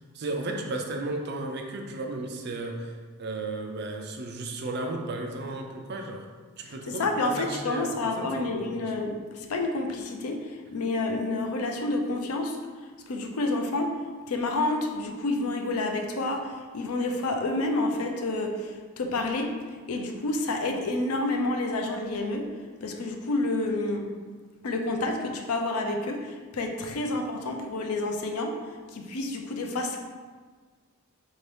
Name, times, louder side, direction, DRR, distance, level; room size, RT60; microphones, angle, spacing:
voice 1, 0.1-6.3 6.6-8.9, right 2 dB, 45° right, 3 dB, 0.4 m, -34 dB
voice 2, 6.7-12.6 13.1-13.9 14.3-19.5 19.9-22.5 22.8-24.1 24.6-28.5 28.9-30.0, left 2 dB, 80° left, 3 dB, 0.5 m, -29 dB
4.3 x 2.7 x 3.3 m, 1.5 s
head